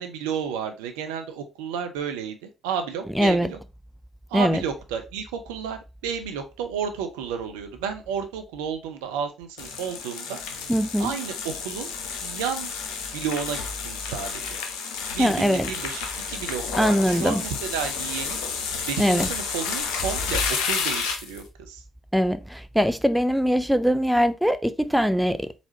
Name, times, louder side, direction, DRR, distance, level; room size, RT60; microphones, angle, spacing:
voice 1, 0.0-3.6 4.3-10.4 11.0-11.9 12.2-12.7 13.1-14.6 15.1-18.4 18.9-21.8, right 7 dB, 80° right, 0.6 m, -32 dB
voice 2, 3.1-3.5 4.3-4.6 10.7-11.1 15.2-15.7 16.8-17.4 19.0-19.3 22.1-25.5, equal, 5° right, 0.5 m, -22 dB
sound 1, 9.6-21.4, left 5 dB, 75° left, 0.8 m, -31 dB
4.2 x 4.1 x 2.8 m
hypercardioid pair, 45°, 0 cm